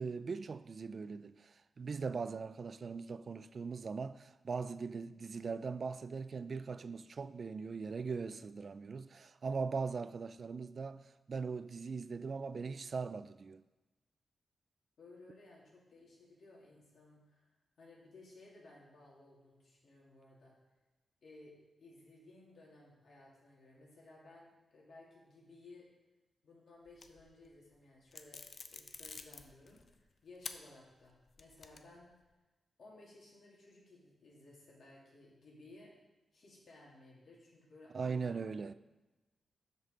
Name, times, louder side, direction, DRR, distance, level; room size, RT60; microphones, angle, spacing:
voice 1, 0.0-13.6 37.9-38.7, right 5 dB, 55° right, 0.3 m, -40 dB
voice 2, 15.0-17.4 17.8-20.5 21.2-25.9 26.4-32.1 32.8-35.9 36.3-38.5, left 2 dB, 70° left, 3.0 m, -58 dB
sound 1, 26.9-27.5 28.1-29.9 30.4-30.6 31.0-32.0, left 4 dB, 55° left, 0.6 m, -48 dB
12.5 x 5.5 x 3.9 m
cardioid pair, 80°, 0 cm